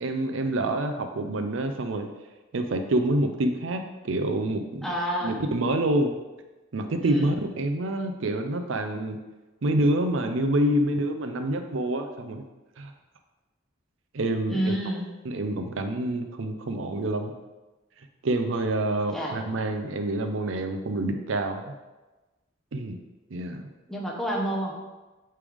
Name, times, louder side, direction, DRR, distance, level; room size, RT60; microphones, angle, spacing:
voice 1, 0.0-2.1 2.5-4.9 5.2-6.1 6.7-9.2 9.6-12.4 12.8-12.9 14.1-14.7 15.3-17.3 18.2-21.7 22.7-23.0 23.3-23.7, right 1 dB, 80° right, 6 dB, 0.6 m, -27 dB
voice 2, 4.8-5.4 7.0-7.3 14.5-15.0 19.1-19.4 23.9-24.7, equal, ahead, -3 dB, 0.9 m, -29 dB
8.4 x 3.3 x 3.5 m, 1.1 s
head